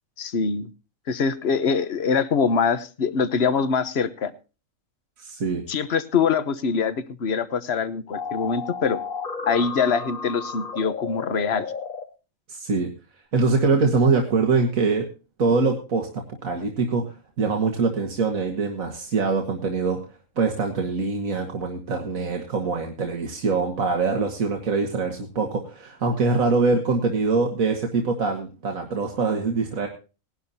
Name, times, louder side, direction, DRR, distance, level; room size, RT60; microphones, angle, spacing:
voice 1, 0.2-0.7 1.1-4.3 5.7-9.0 9.4-11.7, left 5 dB, 55° left, 13 dB, 1.3 m, -24 dB
voice 2, 5.2-5.6 12.5-12.9 13.3-15.1 15.4-29.9, right 4 dB, 85° right, 2 dB, 2.1 m, -24 dB
sound 1, 8.1-12.0, left 5 dB, 85° left, 2.1 m, -33 dB
20.0 x 11.5 x 2.8 m, 0.33 s
omnidirectional pair, 1.4 m